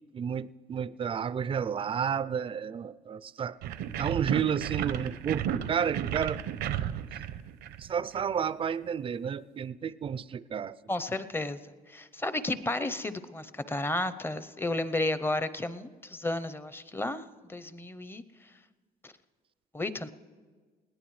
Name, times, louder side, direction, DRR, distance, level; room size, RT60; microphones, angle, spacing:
voice 1, 0.1-3.6 4.0-6.4 7.1-7.2 7.8-10.8, right 7 dB, 30° right, 17 dB, 0.4 m, -31 dB
sound 1, 3.6-8.2, right 9 dB, 80° right, 0.7 m, -33 dB
voice 2, 10.9-18.2 19.0-19.1 19.7-20.1, left 2 dB, 15° left, 14 dB, 0.6 m, -33 dB
21.0 x 17.5 x 3.2 m, 1.5 s
cardioid pair, 110°, 17 cm